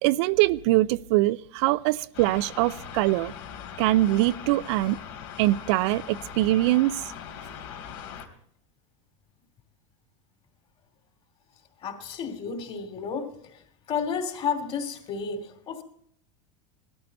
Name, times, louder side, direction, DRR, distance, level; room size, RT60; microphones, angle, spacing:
voice 1, 0.0-3.3 3.8-5.0 5.4-7.0, right 17 dB, 65° right, 16 dB, 0.5 m, -23 dB
sound 1, 2.1-8.3, left 8 dB, 70° left, 3.2 m, -41 dB
voice 2, 11.8-13.3 13.9-15.8, left 6 dB, 35° left, 6 dB, 2.8 m, -31 dB
18.5 x 13.5 x 4.2 m, 0.66 s
supercardioid pair, 125°, 16 cm